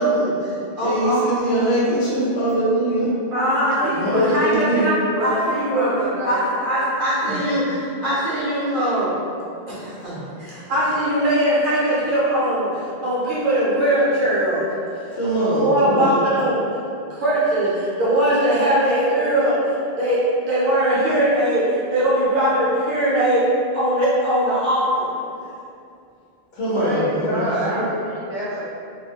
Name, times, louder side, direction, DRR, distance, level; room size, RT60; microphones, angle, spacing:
voice 1, 0.0-1.2 3.3-5.9 6.2-9.1 9.7-12.7 13.0-14.7 15.5-16.6 17.1-20.2 20.5-23.5 23.7-25.1, right 1 dB, 55° right, -9 dB, 0.8 m, -21 dB
voice 2, 0.8-3.1 4.0-4.9 7.2-7.4 9.8-10.1 15.1-16.2 26.5-27.9, right 1 dB, 70° left, -8 dB, 0.9 m, -22 dB
voice 3, 3.8-6.4 26.7-28.6, equal, 40° left, -13 dB, 0.4 m, -27 dB
2.4 x 2.1 x 2.7 m, 2.6 s
omnidirectional pair, 1.1 m